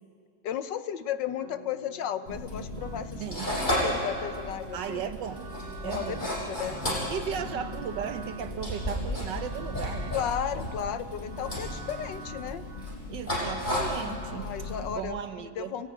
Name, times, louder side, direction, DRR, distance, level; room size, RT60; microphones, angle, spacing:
voice 1, 0.4-3.2 3.8-5.1 5.8-6.8 7.3-7.5 10.1-12.7 14.3-15.9, left 9 dB, 75° left, 11 dB, 1.6 m, -34 dB
sound 1, 1.4-14.9, right 2 dB, 40° right, 3.3 m, -46 dB
sound 2, 2.3-15.0, left 1 dB, 25° left, 6.6 m, -34 dB
voice 2, 3.2-3.5 4.7-5.5 5.8-6.3 7.1-10.1 13.1-14.5 14.9-15.7, right 8 dB, 75° right, 9 dB, 1.5 m, -36 dB
28.0 x 17.0 x 9.3 m, 2.3 s
omnidirectional pair, 2.0 m